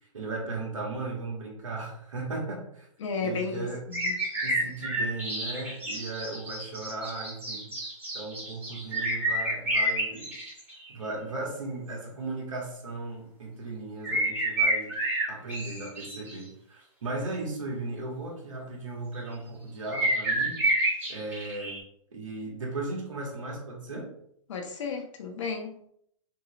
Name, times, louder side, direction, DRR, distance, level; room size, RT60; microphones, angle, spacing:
voice 1, 0.1-2.9 3.2-3.8 4.4-7.7 8.1-10.3 10.9-14.9 15.3-20.6 21.1-21.8 22.1-24.1, right 2 dB, 75° right, -1 dB, 1.7 m, -36 dB
voice 2, 3.0-4.2 24.5-25.7, left 4 dB, 65° left, 2 dB, 1.1 m, -33 dB
sound 1, 3.9-10.9 14.0-16.3 19.9-21.8, right 1 dB, 10° right, 1.6 m, -29 dB
6.1 x 3.0 x 2.5 m, 0.71 s
hypercardioid pair, 120°, 17 cm